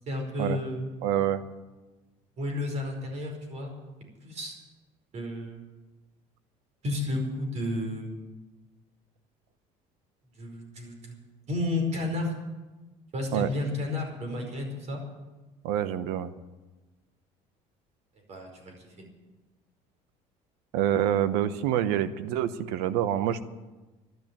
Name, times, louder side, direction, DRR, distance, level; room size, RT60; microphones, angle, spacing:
voice 1, 0.1-0.8 2.4-3.7 4.2-4.6 5.1-5.6 6.8-8.1 10.4-11.2 11.5-12.3 13.1-15.0 18.3-19.0, left 2 dB, 45° right, 2 dB, 5.0 m, -32 dB
voice 2, 1.0-1.4 13.3-13.5 15.6-16.3 20.7-23.4, right 11 dB, 85° right, 13 dB, 0.9 m, -26 dB
12.5 x 11.0 x 8.8 m, 1.2 s
cardioid pair, 120°, 16 cm